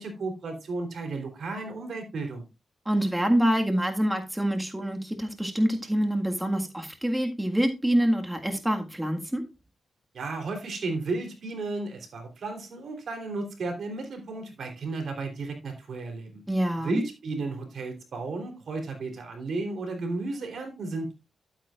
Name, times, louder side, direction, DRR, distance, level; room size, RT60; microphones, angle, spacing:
voice 1, 0.0-2.5 10.1-16.4 16.8-21.1, right 3 dB, 65° right, 4 dB, 3.4 m, -34 dB
voice 2, 2.8-9.4 16.5-17.0, equal, 10° right, 4 dB, 1.7 m, -26 dB
12.0 x 8.8 x 2.5 m, 0.25 s
cardioid pair, 70°, 0 cm